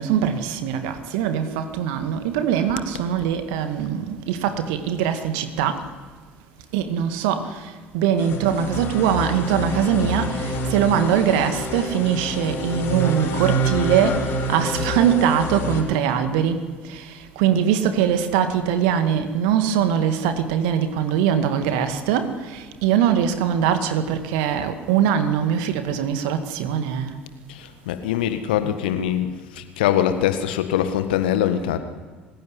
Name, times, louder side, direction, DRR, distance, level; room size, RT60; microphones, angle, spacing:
voice 1, 0.0-5.8 6.7-7.4 7.9-14.2 14.5-16.6 17.4-22.3 22.8-27.1, right 9 dB, 60° right, 2.1 m, -22 dB
sound 1, 8.2-15.8, equal, 50° left, 5.6 m, -27 dB
voice 2, 27.5-31.8, left 10 dB, 65° left, 1.6 m, -23 dB
24.5 x 16.0 x 9.6 m
figure-of-eight pair, 60°, 5 cm